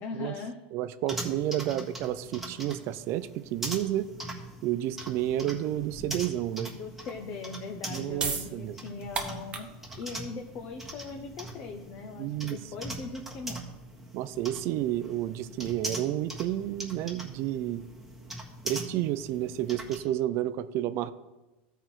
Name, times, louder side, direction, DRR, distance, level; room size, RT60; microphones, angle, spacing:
voice 1, 0.0-0.5 6.8-9.7 9.9-13.6, left 4 dB, 40° left, 3 dB, 0.8 m, -40 dB
voice 2, 0.7-4.1 4.6-6.7 7.9-8.8 12.2-12.6 14.1-17.9 18.6-21.1, right 13 dB, 50° right, 14 dB, 0.5 m, -31 dB
sound 1, 1.1-20.0, right 1 dB, 5° right, 1.5 m, -41 dB
sound 2, 8.1-14.5, right 4 dB, 20° right, 1.1 m, -39 dB
13.5 x 4.5 x 4.5 m, 1.1 s
supercardioid pair, 130°, 6 cm